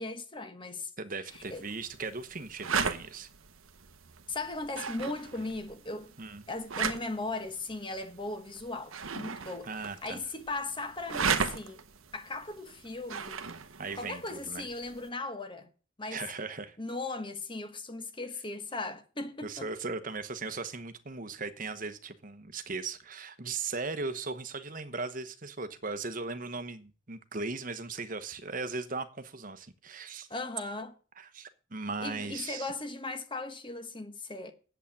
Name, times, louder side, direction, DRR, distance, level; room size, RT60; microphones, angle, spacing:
voice 1, 0.0-0.9 1.5-1.6 4.3-6.1 6.5-11.8 12.1-13.4 14.0-15.7 16.0-16.2 16.8-19.7 30.3-30.9 32.0-34.5, left 2 dB, 25° left, 1.3 m, -38 dB
voice 2, 1.0-3.3 6.2-6.4 9.7-10.2 13.8-14.7 16.1-16.8 19.4-30.3 31.2-32.7, right 4 dB, 40° right, 1.1 m, -38 dB
sound 1, 1.3-15.1, right 6 dB, 75° right, 1.0 m, -37 dB
8.5 x 8.2 x 8.6 m
head